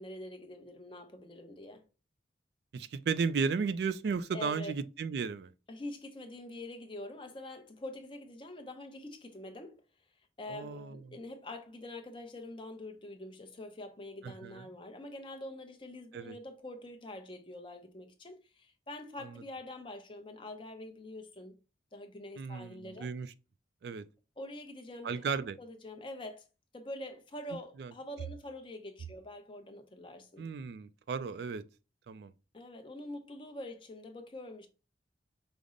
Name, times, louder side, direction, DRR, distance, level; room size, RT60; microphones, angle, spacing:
voice 1, 0.0-1.8 4.3-4.7 5.7-9.8 10.4-21.5 21.9-23.1 24.4-25.3 25.6-26.5 26.7-30.5 32.5-34.7, left 1 dB, 30° left, 0.6 m, -45 dB
voice 2, 2.7-5.5 10.5-11.0 14.2-14.6 16.1-16.4 22.4-23.3 23.8-24.0 25.0-25.6 27.8-27.9 30.4-31.6 32.1-32.3, right 5 dB, 65° right, 0.3 m, -34 dB
5.1 x 2.0 x 3.7 m
head